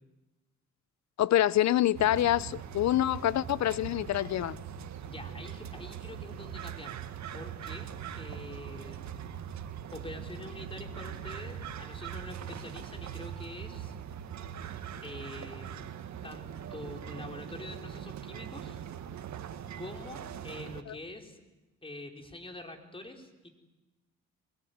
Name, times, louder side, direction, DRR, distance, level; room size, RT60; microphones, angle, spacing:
voice 1, 1.2-4.6 20.9-21.0, left 13 dB, 65° left, 19 dB, 0.8 m, -26 dB
sound 1, 1.9-20.8, right 9 dB, 65° right, 1.9 m, -41 dB
voice 2, 5.0-7.0 7.3-9.0 9.9-13.9 15.0-15.9 16.2-18.8 19.8-21.4 21.8-23.5, left 2 dB, 20° left, 3 dB, 4.7 m, -45 dB
24.0 x 21.5 x 9.6 m, 1.1 s
cardioid pair, 90°, 30 cm